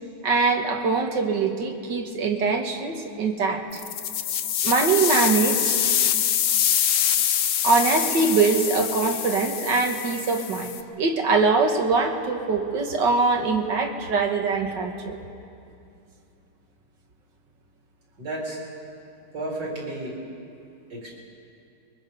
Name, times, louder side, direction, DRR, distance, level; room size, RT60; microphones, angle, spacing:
voice 1, 0.2-3.8 4.6-5.8 7.6-15.2, right 4 dB, 90° right, 3 dB, 2.2 m, -23 dB
sound 1, 3.7-10.8, left 9 dB, 70° left, 1.3 m, -25 dB
voice 2, 18.2-18.6 19.3-20.2 20.9-21.2, right 1 dB, 65° right, -3 dB, 4.6 m, -32 dB
22.5 x 22.0 x 5.4 m, 2.5 s
omnidirectional pair, 1.9 m